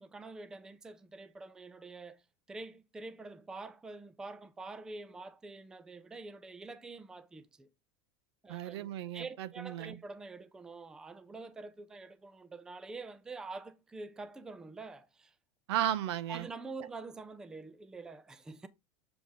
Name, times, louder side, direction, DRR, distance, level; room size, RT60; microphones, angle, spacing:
voice 1, 0.0-2.2 2.5-7.7 8.4-15.3 16.3-18.7, right 3 dB, 5° right, 0.4 m, -46 dB
voice 2, 8.5-10.0 15.7-16.5, right 11 dB, 70° right, 0.6 m, -34 dB
7.0 x 3.8 x 4.8 m
supercardioid pair, 165°, 14 cm